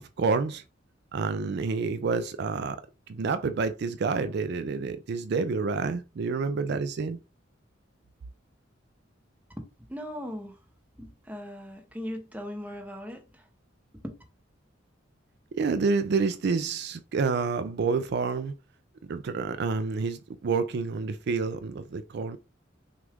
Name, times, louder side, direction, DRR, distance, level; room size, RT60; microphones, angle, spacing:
voice 1, 0.2-0.6 1.1-2.8 3.1-7.2 15.6-18.5 19.1-22.4, right 4 dB, 60° right, 0.4 m, -28 dB
voice 2, 9.9-10.6 11.0-13.5 14.0-14.1, equal, 10° right, 0.9 m, -38 dB
6.1 x 2.4 x 3.5 m
head